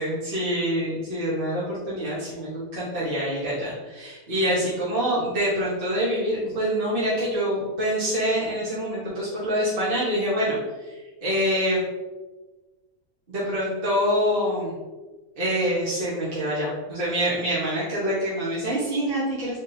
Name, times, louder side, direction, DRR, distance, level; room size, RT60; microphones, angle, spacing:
voice 1, 0.0-10.6 10.8-11.8 13.3-14.7 15.4-19.6, equal, 35° right, -9 dB, 1.1 m, -26 dB
3.9 x 3.6 x 2.7 m, 1.2 s
omnidirectional pair, 1.8 m